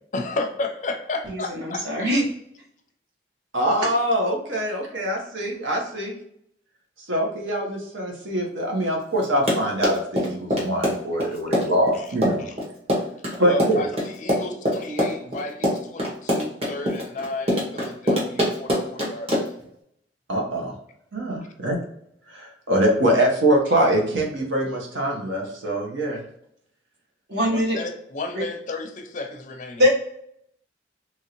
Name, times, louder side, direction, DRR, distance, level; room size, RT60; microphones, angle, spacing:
voice 1, 0.1-2.1 11.9-12.0 12.4-12.5 13.4-19.5 27.5-29.8, left 2 dB, 40° left, 5 dB, 0.4 m, -32 dB
voice 2, 1.3-2.2 27.3-27.8 28.3-28.4 29.8-29.9, left 1 dB, 60° right, -3 dB, 1.1 m, -22 dB
voice 3, 3.5-6.1 7.1-12.4 13.4-13.8 20.3-20.7 21.1-21.8 22.3-26.2, right 1 dB, 80° right, 0 dB, 0.9 m, -23 dB
Run, 9.2-19.6, equal, 30° right, 0.9 m, -24 dB
3.0 x 2.6 x 2.9 m, 0.72 s
head